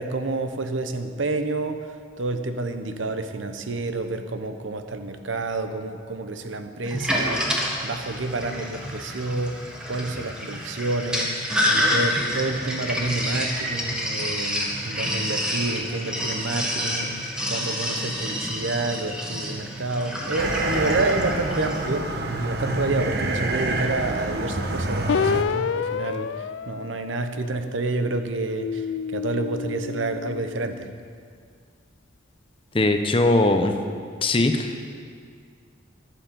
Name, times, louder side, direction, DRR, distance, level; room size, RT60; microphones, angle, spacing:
voice 1, 0.0-11.4 11.7-30.9, right 2 dB, 90° right, 8 dB, 0.9 m, -29 dB
Sink (filling or washing), 6.9-21.9, equal, 5° right, 1.5 m, -28 dB
sound 1, 20.4-25.4, right 2 dB, 55° right, 1.1 m, -27 dB
sound 2, 25.1-27.8 28.4-30.8, left 6 dB, 75° left, 0.3 m, -29 dB
voice 2, 32.7-33.8 34.2-34.8, left 2 dB, 30° left, 6 dB, 0.7 m, -20 dB
11.5 x 9.1 x 6.9 m, 2.1 s
head